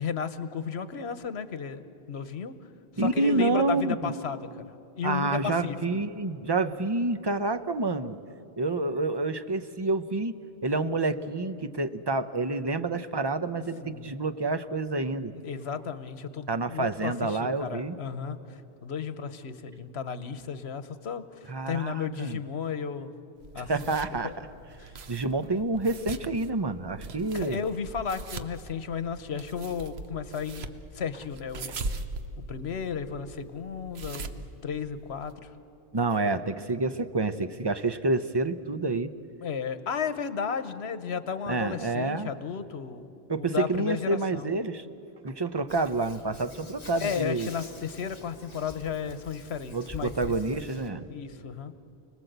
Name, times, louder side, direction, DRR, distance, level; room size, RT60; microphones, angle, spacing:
voice 1, 0.0-1.8 2.1-2.5 3.0-4.6 5.0-6.0 13.8-14.1 15.3-23.1 23.5-23.9 24.2-24.4 24.8-24.9 27.3-30.6 30.9-32.0 32.4-35.5 39.4-43.0 43.4-44.5 47.0-50.6 51.1-51.7, left 6 dB, 85° left, 12 dB, 1.3 m, -34 dB
voice 2, 3.0-4.1 5.0-8.2 8.6-10.4 10.6-15.3 16.5-18.0 21.5-22.4 23.7-24.5 25.1-27.6 35.9-39.1 41.4-42.3 43.3-44.9 45.2-47.5 49.7-51.1, right 2 dB, 25° right, 10 dB, 0.7 m, -28 dB
sound 1, 23.4-35.3, right 3 dB, 75° right, 1.2 m, -41 dB
Hands, 45.7-50.9, left 2 dB, 40° left, 1.7 m, -46 dB
29.0 x 19.5 x 8.0 m, 2.7 s
omnidirectional pair, 1.1 m